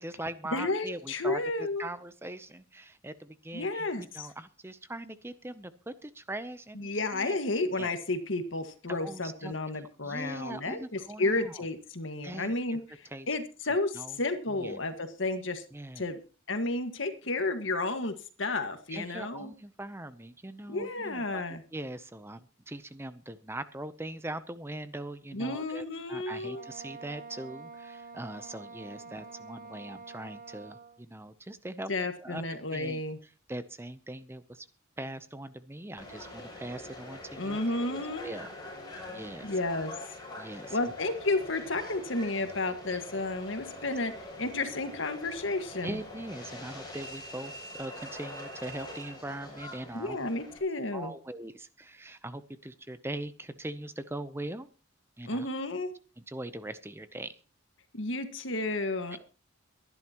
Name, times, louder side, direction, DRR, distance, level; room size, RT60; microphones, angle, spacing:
voice 1, 0.0-7.4 7.8-7.9 8.9-11.7 12.2-12.8 13.0-13.3 13.9-14.2 14.5-14.8 15.7-16.1 18.9-31.9 32.2-33.0 33.5-34.7 35.0-38.5 39.1-39.6 40.4-40.8 43.8-43.9 45.8-50.3 50.9-54.7 55.2-55.5 56.2-57.3, right 1 dB, 10° right, 12 dB, 0.7 m, -41 dB
voice 2, 0.5-1.9 3.5-4.3 6.8-15.6 16.0-16.2 16.5-19.5 20.7-21.6 25.3-26.6 31.9-33.2 37.4-38.3 39.4-39.9 40.7-46.0 49.9-51.1 55.3-55.9 57.9-59.2, left 2 dB, 65° left, 8 dB, 1.8 m, -32 dB
Wind instrument woodwind instrument, 26.5-31.0, right 4 dB, 40° right, 1.0 m, -47 dB
Subway metro underground, 36.0-50.6, left 1 dB, 20° left, 7.0 m, -44 dB
23.0 x 11.0 x 3.0 m, 0.34 s
head